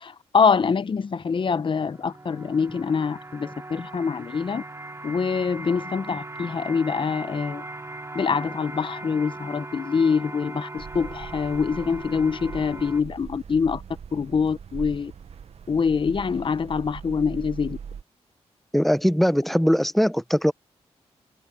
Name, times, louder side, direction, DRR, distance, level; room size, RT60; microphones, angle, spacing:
voice 1, 0.0-4.6 5.0-7.6 8.1-13.8 14.1-15.1 15.7-17.8, left 5 dB, 45° left, 0.8 m, -25 dB
sound 1, 1.0-13.0, right 2 dB, 25° right, 3.4 m, -39 dB
sound 2, 10.8-18.0, right 7 dB, 65° right, 1.0 m, -40 dB
voice 2, 18.7-20.5, equal, ahead, 0.8 m, -20 dB
cardioid pair, 65°, 11 cm